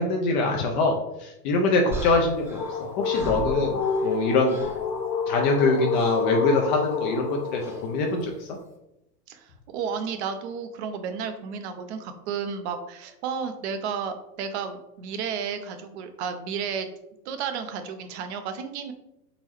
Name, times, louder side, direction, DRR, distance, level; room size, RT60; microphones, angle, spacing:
voice 1, 0.0-4.6 5.3-8.3, left 3 dB, 30° left, 2 dB, 0.4 m, -24 dB
sound 1, 1.9-4.2 4.4-4.9 5.9-6.2 7.6-7.9, equal, 5° right, 0.7 m, -37 dB
sound 2, 2.1-8.3, left 5 dB, 75° left, 0.9 m, -29 dB
voice 2, 9.3-16.9 17.3-18.9, right 6 dB, 45° right, 8 dB, 0.6 m, -32 dB
4.1 x 3.8 x 3.1 m, 0.86 s
hypercardioid pair, 120°, 50 cm